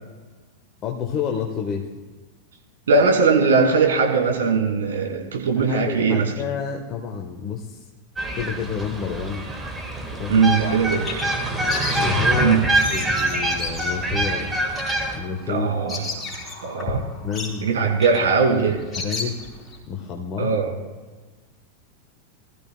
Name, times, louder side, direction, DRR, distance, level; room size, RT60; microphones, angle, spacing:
voice 1, 0.8-1.9 5.7-7.8 8.3-9.5 10.2-10.7 12.0-12.6 12.9-14.7 15.1-15.7 17.2-17.7 19.0-19.4 19.9-20.5, left 7 dB, 30° left, 0 dB, 1.1 m, -29 dB
voice 2, 2.9-6.3 10.3-11.1 12.4-12.6 15.5-16.1 16.6-17.0 17.6-18.8 20.4-20.7, right 4 dB, 65° right, 1 dB, 2.3 m, -20 dB
sound 1, 8.2-15.2, right 1 dB, 10° right, 1.6 m, -25 dB
Bird vocalization bird call bird song, 10.6-19.8, left 1 dB, 10° left, 3.3 m, -33 dB
20.0 x 14.0 x 2.2 m, 1.3 s
figure-of-eight pair, 90°, 0 cm